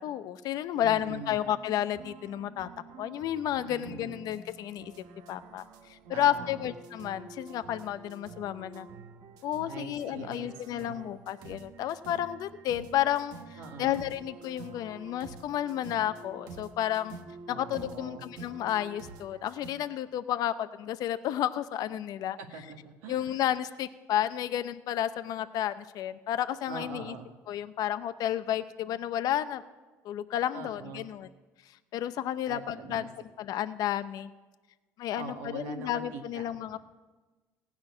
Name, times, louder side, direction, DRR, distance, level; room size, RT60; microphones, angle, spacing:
voice 1, 0.0-2.7 3.0-4.9 5.3-8.9 9.4-13.4 13.8-17.2 17.5-22.4 23.1-27.1 27.5-29.6 30.0-31.3 31.9-33.1 33.4-34.3 35.0-36.8, left 11 dB, 65° left, 11 dB, 0.6 m, -31 dB
sound 1, 0.8-19.7, right 4 dB, 70° right, 1.0 m, -49 dB
voice 2, 0.8-1.4 3.6-4.2 6.1-6.7 9.7-11.0 13.6-14.0 17.5-18.2 22.4-23.4 26.7-27.3 30.5-31.1 32.5-33.1 35.1-36.5, right 4 dB, 90° right, 1 dB, 1.8 m, -43 dB
16.0 x 6.0 x 9.7 m, 1.3 s
supercardioid pair, 90°, 7 cm